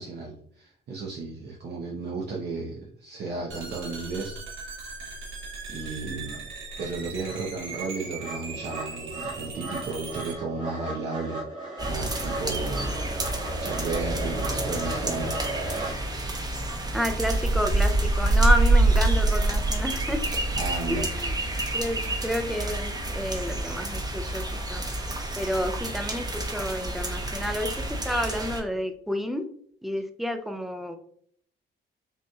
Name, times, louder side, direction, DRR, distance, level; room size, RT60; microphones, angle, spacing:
voice 1, 0.0-4.8 5.2-5.3 5.7-6.4 6.8-11.4 11.9-13.0 13.6-15.4 20.6-21.1, right 3 dB, 55° right, -2 dB, 0.8 m, -34 dB
sound 1, 3.5-10.4, right 4 dB, 75° right, 1.2 m, -39 dB
sound 2, 5.8-5.9 6.3-15.9, right 2 dB, 40° right, 1.7 m, -36 dB
distant thunders meadow, 11.8-28.6, right 2 dB, 20° right, 0.9 m, -27 dB
voice 2, 16.9-20.2 20.9-21.3 21.7-24.4 24.7-24.8 25.4-29.5 29.8-31.0, equal, ahead, 6 dB, 0.5 m, -30 dB
5.5 x 3.0 x 2.3 m, 0.63 s
cardioid pair, 90°, 20 cm